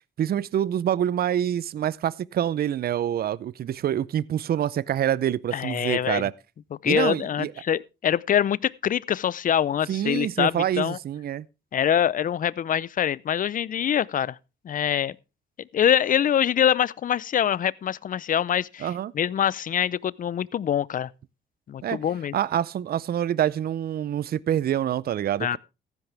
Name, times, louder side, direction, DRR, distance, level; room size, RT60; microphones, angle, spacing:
voice 1, 0.2-6.3 6.8-7.5 9.9-11.5 18.8-19.1 21.8-22.0 22.3-25.6, right 10 dB, 50° right, 0.5 m, -26 dB
voice 2, 5.5-6.3 6.8-11.0 11.7-14.4 14.6-15.2 15.7-21.1 21.7-22.3 25.4-25.6, left 9 dB, 45° left, 0.5 m, -24 dB
14.5 x 10.5 x 3.4 m
cardioid pair, 90°, 20 cm